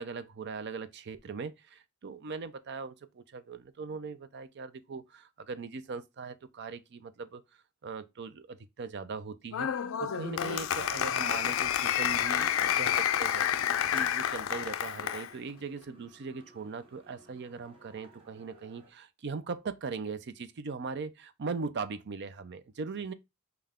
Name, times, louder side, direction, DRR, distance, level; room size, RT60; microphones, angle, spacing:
voice 1, 0.0-9.7 10.0-13.7 13.9-23.1, right 4 dB, 55° right, 0.5 m, -40 dB
Applause, 9.5-15.3, left 10 dB, 65° left, 0.4 m, -29 dB
sound 1, 11.9-14.4 14.8-15.0 15.3-18.9, right 2 dB, 25° right, 1.2 m, -57 dB
5.5 x 2.3 x 3.5 m
head